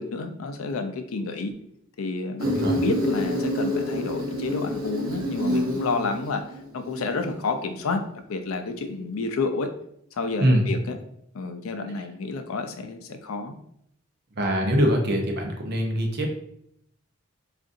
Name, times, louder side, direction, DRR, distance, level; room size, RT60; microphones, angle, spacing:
voice 1, 0.0-1.5 2.0-6.4 6.7-8.0 8.3-9.7 10.1-11.0 11.3-13.5, left 3 dB, 85° left, 7 dB, 0.4 m, -30 dB
voice 2, 2.4-2.8 10.4-10.6 14.3-16.3, equal, 55° right, 2 dB, 0.7 m, -23 dB
Insect, 2.4-7.4, equal, 85° right, 0.8 m, -28 dB
3.7 x 2.5 x 2.5 m, 0.71 s
head